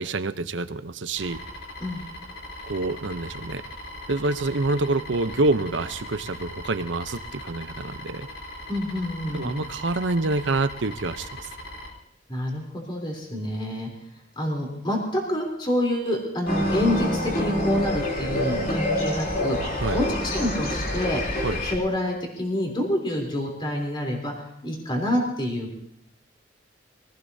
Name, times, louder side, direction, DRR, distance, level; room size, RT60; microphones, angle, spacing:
voice 1, 0.0-1.4 2.7-3.6 4.1-8.3 9.3-11.5 19.8-20.0 21.4-21.6, right 2 dB, 80° right, 11 dB, 0.8 m, -27 dB
sound 1, 1.2-11.9, left 1 dB, 85° left, 3.7 m, -40 dB
voice 2, 8.7-9.5 12.3-13.9 14.4-19.6 19.9-21.2 21.6-25.7, left 1 dB, 25° left, 0 dB, 3.6 m, -27 dB
sound 2, 16.5-21.7, left 1 dB, 50° left, 3.4 m, -26 dB
24.0 x 18.0 x 2.8 m, 0.74 s
head